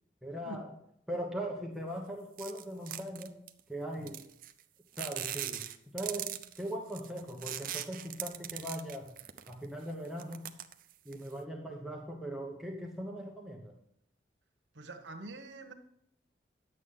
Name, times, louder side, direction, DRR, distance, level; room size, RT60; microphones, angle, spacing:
voice 1, 0.2-0.7 1.1-3.3 3.7-4.3 5.0-5.7 5.9-9.1 9.5-10.5 11.0-13.7, right 1 dB, ahead, 1.0 m, -40 dB
sound 1, 2.4-3.6 4.1-4.6 4.9-9.6 10.0-11.3, right 12 dB, 50° right, 0.6 m, -40 dB
voice 2, 14.7-15.7, right 2 dB, 80° right, 1.2 m, -45 dB
10.0 x 8.4 x 3.7 m
head